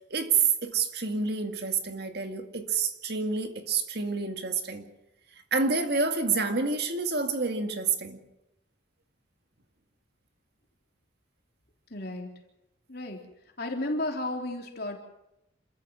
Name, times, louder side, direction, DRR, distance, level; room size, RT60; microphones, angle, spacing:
voice 1, 0.1-4.9 5.5-8.2, right 5 dB, 55° right, 2.1 m, -28 dB
voice 2, 11.9-12.3 12.9-13.2 13.6-15.0, left 1 dB, 55° left, 3.7 m, -33 dB
27.5 x 14.0 x 7.6 m
head